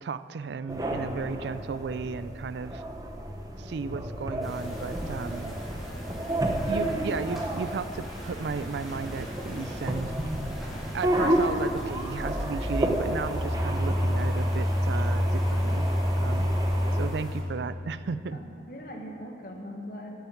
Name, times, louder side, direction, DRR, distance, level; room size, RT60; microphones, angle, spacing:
voice 1, 0.0-2.8 3.6-5.6 6.5-10.1 10.9-15.9 16.2-16.6 16.9-18.4, right 5 dB, 75° right, 14 dB, 0.4 m, -34 dB
sound 1, 0.7-17.1, equal, 20° right, 0.9 m, -29 dB
sound 2, 4.4-17.4, equal, ahead, 1.9 m, -41 dB
voice 2, 18.3-20.3, equal, 50° left, 2 dB, 1.5 m, -41 dB
9.3 x 8.8 x 8.4 m, 2.7 s
head